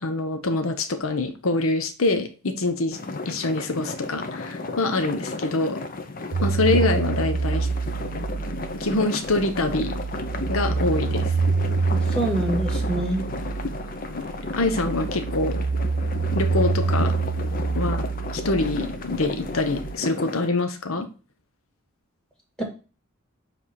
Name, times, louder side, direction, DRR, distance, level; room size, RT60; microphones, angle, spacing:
voice 1, 0.0-3.0 3.2-5.8 6.4-7.7 8.7-9.9 10.5-11.3 14.1-14.2 14.5-15.6 16.3-17.1 17.7-18.0 18.3-21.1, left 2 dB, 75° left, 7 dB, 0.9 m, -25 dB
sound 1, 2.9-20.5, left 3 dB, 40° left, 0.7 m, -33 dB
sound 2, 6.3-19.9, right 4 dB, 60° right, 0.4 m, -27 dB
voice 2, 11.9-13.3 22.6-22.7, right 1 dB, 5° left, 1 dB, 1.8 m, -26 dB
7.3 x 3.4 x 4.3 m, 0.33 s
head